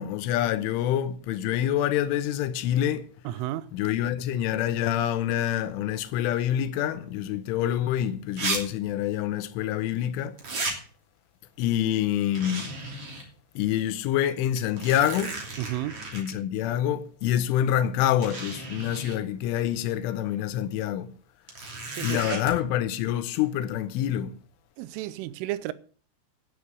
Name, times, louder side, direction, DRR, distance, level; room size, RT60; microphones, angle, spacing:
voice 1, 0.0-3.0 3.7-10.3 11.6-12.7 13.6-15.4 16.1-21.1 22.0-24.3, left 11 dB, 85° left, 3.4 m, -26 dB
voice 2, 3.2-3.7 15.6-16.0 21.9-22.4 24.8-25.7, right 14 dB, 85° right, 3.3 m, -32 dB
sound 1, 7.6-7.7 8.4-8.6 8.8-8.9 10.4-10.8 12.3-13.2 13.7-13.8 14.6-16.3 17.5-17.6 18.2-19.2 21.5-22.5, right 3 dB, 35° right, 3.2 m, -34 dB
10.5 x 10.0 x 6.7 m
omnidirectional pair, 5.5 m